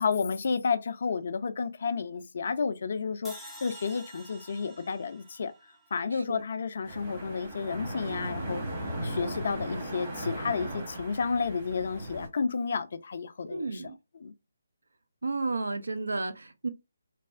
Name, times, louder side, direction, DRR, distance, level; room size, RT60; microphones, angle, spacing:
voice 1, 0.0-5.5 5.9-8.6 9.0-13.8 14.2-14.3, left 5 dB, 55° left, 0.4 m, -31 dB
sound 1, 3.2-6.5, right 1 dB, ahead, 0.6 m, -49 dB
voice 2, 6.1-6.4 13.4-14.0 15.2-16.7, right 3 dB, 75° right, 0.5 m, -32 dB
sound 2, 6.8-12.3, right 1 dB, 30° right, 1.2 m, -37 dB
3.2 x 2.0 x 2.4 m
figure-of-eight pair, 145°, 0 cm